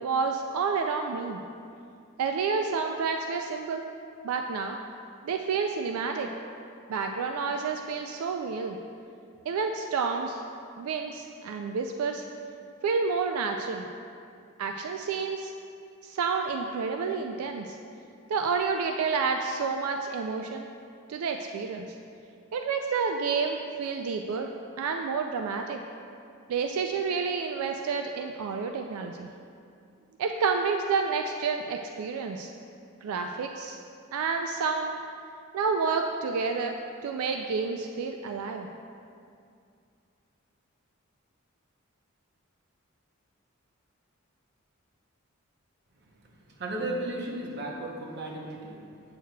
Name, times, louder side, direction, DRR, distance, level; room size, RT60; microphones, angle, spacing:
voice 1, 0.0-1.4 2.2-3.8 4.2-4.8 5.2-6.3 6.9-8.8 9.5-10.4 10.8-12.2 12.8-13.9 14.6-15.5 16.0-17.8 18.3-20.7 21.1-21.9 22.5-24.5 24.8-25.8 26.5-29.3 30.2-32.5 33.0-33.8 34.1-35.0 35.5-36.8 37.0-38.7, right 5 dB, 85° right, 4 dB, 0.3 m, -29 dB
voice 2, 46.2-49.0, right 1 dB, 50° right, 0 dB, 0.8 m, -35 dB
7.9 x 6.4 x 2.2 m, 2.4 s
head